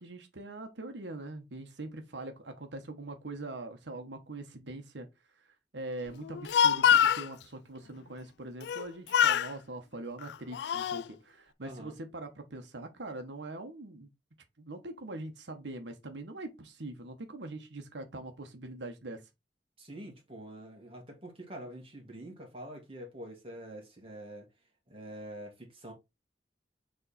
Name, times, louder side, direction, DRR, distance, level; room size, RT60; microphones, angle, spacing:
voice 1, 0.0-5.1 5.7-14.1 14.6-19.2, right 2 dB, 85° right, 1.2 m, -42 dB
Speech, 6.2-7.3 8.6-8.9 9.1-9.5 10.2-11.0, left 9 dB, 70° left, 0.3 m, -25 dB
voice 2, 11.6-11.9 19.8-24.5 24.9-25.9, right 1 dB, 35° right, 1.9 m, -45 dB
6.8 x 3.5 x 4.2 m
head